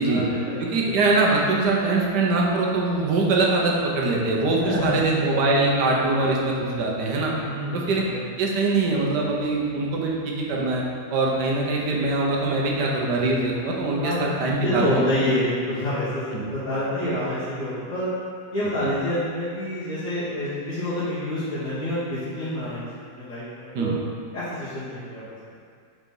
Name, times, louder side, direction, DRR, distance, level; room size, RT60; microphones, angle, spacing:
voice 1, 0.1-1.0 4.6-5.0 7.4-8.2 14.0-18.1 18.5-22.9 23.1-23.9 24.3-25.2, left 1 dB, 60° left, -13 dB, 1.8 m, -27 dB
voice 2, 0.6-7.3 7.7-8.0 8.4-10.8 11.1-15.0 16.3-16.5 23.7-23.9, right 2 dB, 80° right, -2 dB, 1.5 m, -23 dB
4.8 x 4.3 x 5.3 m, 2.2 s
omnidirectional pair, 1.8 m